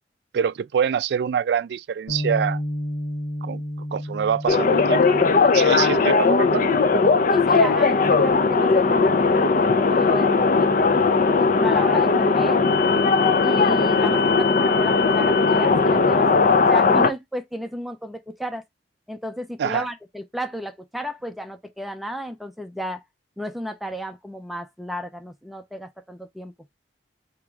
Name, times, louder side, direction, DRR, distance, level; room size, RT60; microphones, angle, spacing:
voice 1, 0.3-2.6 3.4-3.6 3.9-5.3 5.5-6.7 19.6-19.9, right 8 dB, 70° right, 0.3 m, -25 dB
Bass guitar, 2.1-8.3, equal, 80° left, 1.2 m, -33 dB
sound 1, 4.5-17.1, left 4 dB, 50° left, 0.5 m, -18 dB
voice 2, 5.4-6.0 7.3-10.7 11.3-12.7 13.4-18.6 19.1-23.0 23.4-26.5, equal, ahead, 0.5 m, -33 dB
3.6 x 3.0 x 4.7 m
head